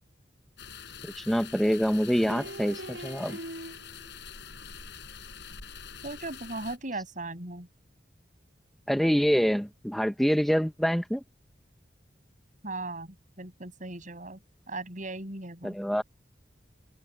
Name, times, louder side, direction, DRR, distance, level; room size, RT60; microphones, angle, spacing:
sound 1, 0.6-6.8, left 7 dB, 75° left, 4.1 m, -45 dB
sound 2, 0.9-1.0 2.2-4.2, right 1 dB, 80° right, 7.8 m, -42 dB
voice 1, 1.1-3.4 8.9-11.2 15.6-16.0, equal, ahead, 0.7 m, -26 dB
voice 2, 6.0-7.7 12.6-14.4 14.7-15.8, right 2 dB, 45° right, 7.4 m, -38 dB
open air
head